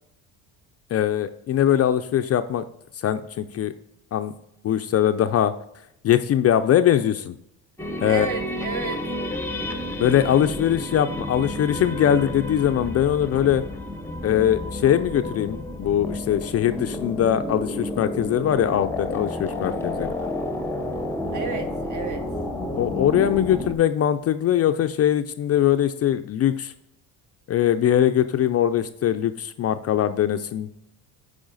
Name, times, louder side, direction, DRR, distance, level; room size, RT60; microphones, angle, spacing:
voice 1, 0.9-2.6 3.0-3.7 4.1-4.3 4.6-5.5 6.0-7.4 8.0-8.3 10.0-13.6 14.2-20.1 22.8-26.7 27.5-30.7, left 10 dB, 40° left, 10 dB, 0.4 m, -21 dB
sound 1, 7.8-23.7, left 1 dB, 5° left, 0.7 m, -31 dB
voice 2, 8.0-9.1 20.2-20.3 21.3-22.3, right 5 dB, 45° right, 8 dB, 1.1 m, -32 dB
8.7 x 4.9 x 3.9 m, 0.78 s
cardioid pair, 115°, 40 cm